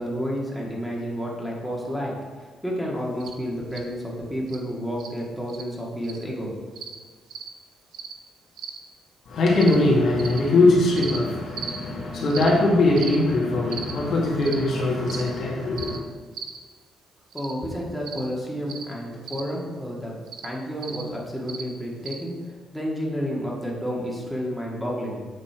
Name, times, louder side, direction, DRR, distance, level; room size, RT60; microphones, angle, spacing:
voice 1, 0.0-6.6 17.3-20.1 20.4-25.2, equal, ahead, -3 dB, 1.8 m, -30 dB
sound 1, 3.2-3.3 3.7-3.8 4.5-4.6 5.0-5.1 5.5-5.6 6.0-6.2 6.8-7.0 7.3-7.5 7.9-8.1 8.6-8.8 9.6-9.8 10.2-10.4 11.0-11.2 11.6-11.8 12.3-12.5 13.0-13.2 13.7-13.9 14.4-14.6 15.1-15.3 15.8-16.0 16.3-16.6 17.3-17.5 18.1-18.3 18.7-18.8 19.3-19.4 20.3-20.5 20.8-21.0 21.5-21.6 22.1-22.2, right 7 dB, 70° right, 0.8 m, -36 dB
voice 2, 9.3-16.0, left 2 dB, 65° left, -4 dB, 2.0 m, -21 dB
8.5 x 4.3 x 4.5 m, 1.5 s
cardioid pair, 90°, 0 cm